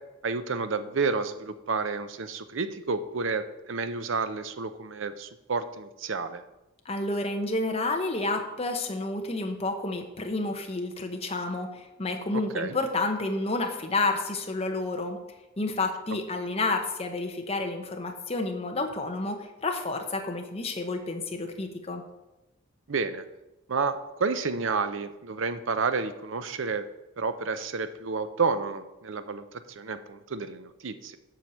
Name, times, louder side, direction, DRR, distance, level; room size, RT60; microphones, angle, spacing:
voice 1, 0.2-6.4 12.5-12.7 22.9-23.2 23.7-26.9 27.2-29.4 29.8-31.2, right 4 dB, 65° right, 11 dB, 0.6 m, -30 dB
voice 2, 6.8-15.2 15.6-22.0, left 2 dB, 30° left, 3 dB, 0.9 m, -30 dB
7.6 x 4.7 x 7.0 m, 0.99 s
head